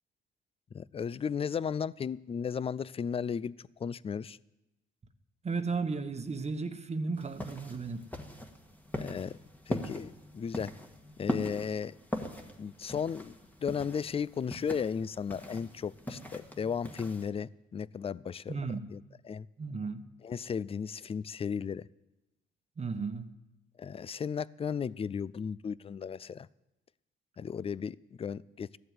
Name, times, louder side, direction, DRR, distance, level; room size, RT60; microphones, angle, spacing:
voice 1, 0.7-3.5 3.8-4.4 9.0-9.4 9.7-10.7 11.2-11.9 12.6-18.5 18.9-19.5 20.2-21.8 23.8-26.5 27.4-28.7, left 6 dB, 30° left, 0.4 m, -35 dB
voice 2, 5.4-8.0 18.5-18.9 19.6-20.0 22.8-23.3, right 4 dB, 35° right, 1.1 m, -34 dB
sound 1, 7.2-17.3, left 1 dB, 10° left, 1.7 m, -40 dB
14.0 x 7.9 x 9.5 m
cardioid pair, 90°, 20 cm